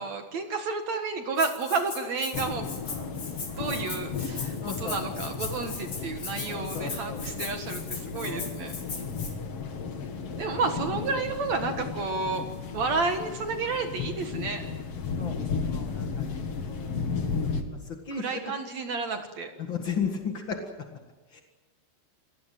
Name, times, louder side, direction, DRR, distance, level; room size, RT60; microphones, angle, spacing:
voice 1, 0.0-2.7 3.5-8.7 10.4-12.4 12.7-14.7 18.2-19.5, right 4 dB, 60° right, 5 dB, 1.8 m, -31 dB
Rattle (instrument), 1.4-9.3, left 4 dB, 30° left, 4.2 m, -39 dB
sound 1, 2.3-17.6, left 5 dB, 50° left, 1.8 m, -34 dB
voice 2, 4.6-5.2 6.5-7.5 8.2-9.1 9.9-10.2 10.5-10.6 15.2-15.3 15.6-17.4 17.8-18.5 19.6-20.7 21.3-21.4, left 5 dB, 65° left, 3 dB, 1.1 m, -36 dB
28.0 x 19.5 x 7.8 m, 1.2 s
omnidirectional pair, 5.5 m